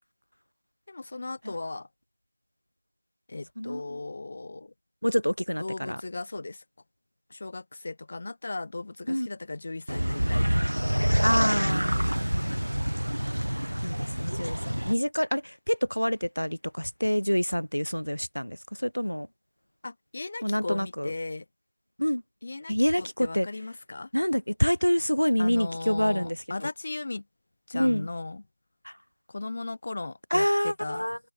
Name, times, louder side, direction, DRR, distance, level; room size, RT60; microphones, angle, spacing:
voice 1, 0.9-1.9 3.3-4.7 5.6-6.6 7.3-11.0 19.8-21.4 22.4-24.1 25.4-27.2 27.7-28.4 29.3-31.1, left 3 dB, 25° left, 1.0 m, -37 dB
voice 2, 5.0-6.0 9.1-9.3 11.2-12.0 13.8-19.3 20.4-21.1 22.0-22.2 22.7-23.5 24.1-26.4 27.7-28.1 28.8-28.9 30.3-31.2, equal, 80° left, 1.1 m, -27 dB
sound 1, 9.9-14.9, equal, 75° right, 1.5 m, -27 dB
figure-of-eight pair, 175°, 0 cm